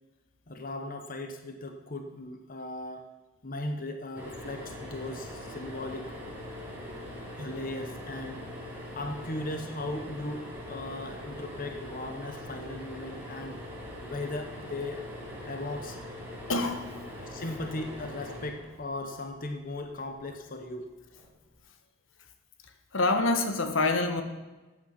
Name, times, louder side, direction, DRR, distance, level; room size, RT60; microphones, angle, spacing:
voice 1, 0.5-3.1 3.4-6.1 7.4-8.4 8.9-13.6 14.0-15.0 15.4-16.0 17.3-20.9, left 2 dB, 45° left, 6 dB, 1.0 m, -37 dB
sound 1, 4.1-19.4 21.1-21.3 21.6-21.7, left 1 dB, 10° right, 3.3 m, -42 dB
voice 2, 16.5-16.9 22.9-24.2, left 2 dB, 80° left, 7 dB, 1.4 m, -26 dB
14.0 x 9.3 x 5.8 m, 1.2 s
head